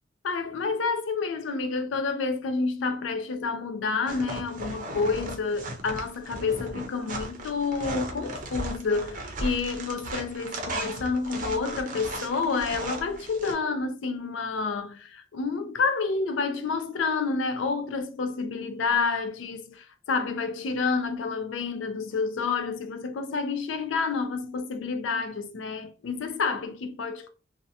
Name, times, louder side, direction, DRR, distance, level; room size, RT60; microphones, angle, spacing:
voice 1, 0.2-27.3, left 4 dB, 85° left, 0.4 m, -29 dB
sound 1, 4.1-13.5, right 2 dB, 45° right, 0.5 m, -36 dB
2.6 x 2.1 x 2.6 m
head